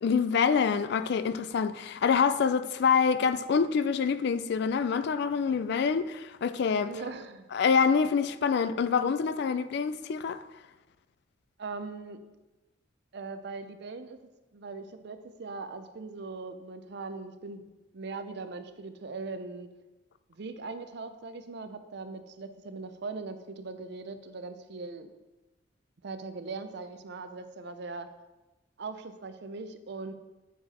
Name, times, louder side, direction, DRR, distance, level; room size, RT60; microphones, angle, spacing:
voice 1, 0.0-6.9 7.5-10.4, left 6 dB, 55° left, 0.3 m, -26 dB
voice 2, 6.8-7.5 11.6-12.2 13.1-14.2 14.5-17.7 17.9-19.7 20.3-25.1 26.0-28.1 28.8-30.1, right 3 dB, 60° right, 0.5 m, -40 dB
8.3 x 4.8 x 4.2 m
head